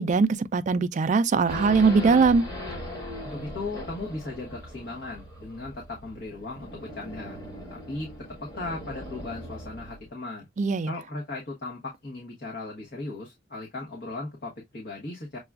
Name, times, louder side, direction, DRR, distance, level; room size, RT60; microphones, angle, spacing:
voice 1, 0.0-2.4 10.6-10.9, right 4 dB, 40° right, 0.3 m, -21 dB
Race car auto racing / Idling / Accelerating revving vroom, 1.5-10.1, left 1 dB, 20° left, 1.4 m, -39 dB
voice 2, 3.2-7.4 7.7-8.1 8.4-10.5 10.9-15.4, left 2 dB, 55° left, 1.1 m, -37 dB
6.7 x 2.4 x 2.2 m
head